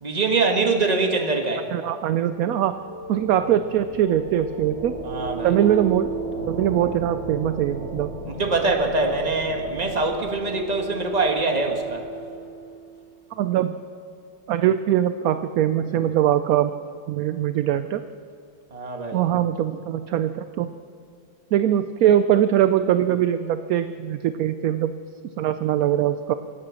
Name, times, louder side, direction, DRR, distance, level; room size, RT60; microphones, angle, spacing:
voice 1, 0.0-1.7 5.0-5.8 8.4-12.0 18.7-19.2, right 3 dB, 25° right, 2 dB, 1.5 m, -23 dB
voice 2, 1.7-2.8 3.1-4.9 5.4-6.1 6.5-8.1 13.4-13.8 14.5-16.7 17.1-18.0 19.1-20.7 21.5-24.9 25.4-26.3, right 11 dB, 70° right, 11 dB, 0.8 m, -22 dB
sound 1, 2.3-12.8, right 2 dB, 45° right, 4.9 m, -34 dB
26.0 x 8.8 x 6.3 m, 2.4 s
omnidirectional pair, 1.9 m